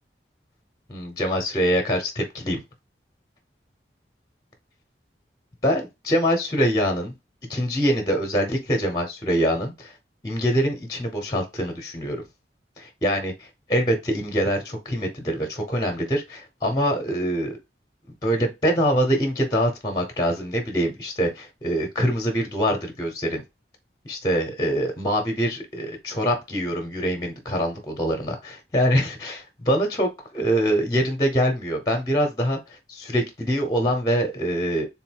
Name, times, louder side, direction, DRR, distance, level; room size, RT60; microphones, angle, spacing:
voice 1, 0.9-2.6 5.6-7.1 7.5-9.9 10.2-12.2 12.8-17.6 18.2-23.4 24.0-34.9, equal, 20° left, 4 dB, 0.8 m, -24 dB
3.6 x 2.6 x 4.5 m, 0.22 s
head